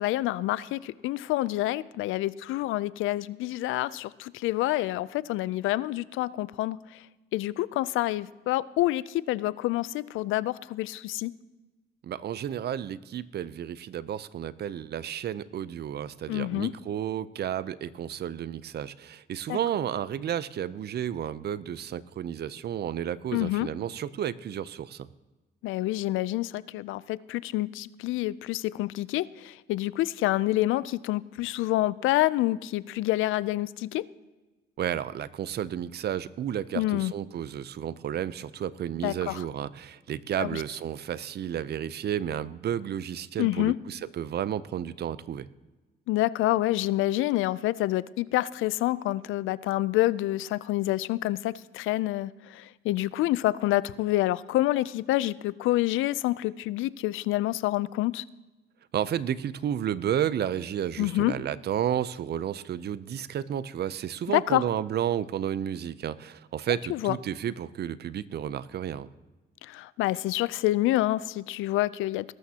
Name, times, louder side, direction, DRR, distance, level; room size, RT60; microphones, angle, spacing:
voice 1, 0.0-6.8 7.3-11.3 16.3-16.7 19.5-19.6 23.3-23.7 25.6-34.0 36.7-37.1 39.0-39.4 40.4-40.6 43.4-43.7 46.1-58.2 61.0-61.3 64.3-64.6 66.9-67.2 69.7-72.2, left 16 dB, 90° left, 19 dB, 0.4 m, -27 dB
voice 2, 12.0-25.1 34.8-45.5 58.9-69.1, right 10 dB, 55° right, 17 dB, 0.6 m, -32 dB
19.5 x 12.5 x 2.9 m, 1.2 s
cardioid pair, 90°, 20 cm